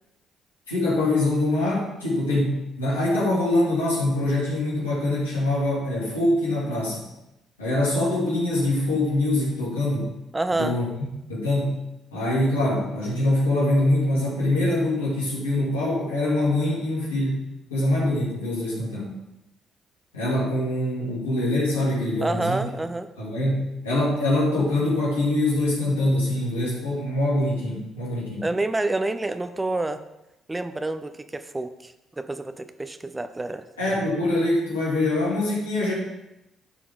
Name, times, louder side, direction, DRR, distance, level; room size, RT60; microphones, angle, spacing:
voice 1, 0.7-7.0 7.6-10.1 10.5-10.8 11.3-11.8 12.1-17.4 17.7-19.2 20.1-22.6 23.2-28.5 33.8-35.9, left 1 dB, 85° left, -7 dB, 2.5 m, -24 dB
voice 2, 10.3-10.8 22.2-23.1 28.4-30.0 30.5-33.6, right 2 dB, 20° right, 10 dB, 0.6 m, -28 dB
12.0 x 4.7 x 3.7 m, 0.92 s
figure-of-eight pair, 45°, 0 cm